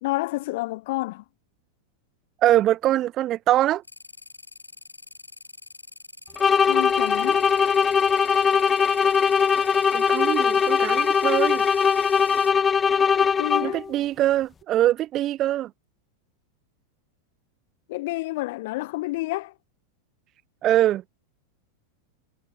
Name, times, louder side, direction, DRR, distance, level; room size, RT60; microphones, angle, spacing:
voice 1, 0.0-1.2 6.6-7.5 13.2-13.8 17.9-19.5, left 20 dB, 50° left, 0.8 m, -29 dB
voice 2, 2.4-3.8 9.9-11.6 13.6-15.7 20.6-21.0, right 13 dB, 35° right, 0.8 m, -23 dB
sound 1, 3.8-12.5, left 2 dB, 85° left, 2.9 m, -44 dB
sound 2, 6.4-13.9, left 6 dB, 20° left, 1.1 m, -21 dB
figure-of-eight pair, 90°, 0 cm